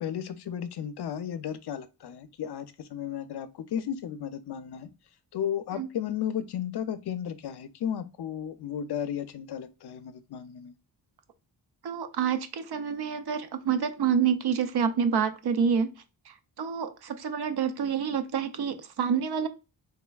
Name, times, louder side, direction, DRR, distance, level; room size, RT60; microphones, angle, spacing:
voice 1, 0.0-4.9 5.3-10.7, left 9 dB, 65° left, 0.5 m, -34 dB
voice 2, 11.8-15.9 16.6-19.5, right 7 dB, 65° right, 0.6 m, -27 dB
3.6 x 3.3 x 2.3 m
wide cardioid pair, 105°, 43 cm